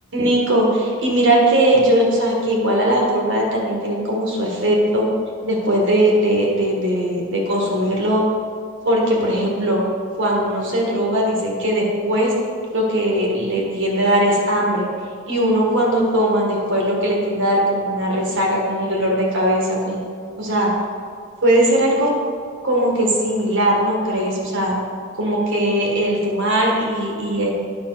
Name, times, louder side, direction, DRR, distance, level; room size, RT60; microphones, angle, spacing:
voice 1, 0.1-5.1 5.4-8.2 8.8-9.8 10.2-12.3 12.7-14.9 15.3-20.0 20.4-20.7 21.4-22.1 22.6-24.8 25.2-27.5, right 1 dB, 60° right, -2 dB, 1.7 m, -19 dB
9.7 x 5.7 x 4.0 m, 2.1 s
head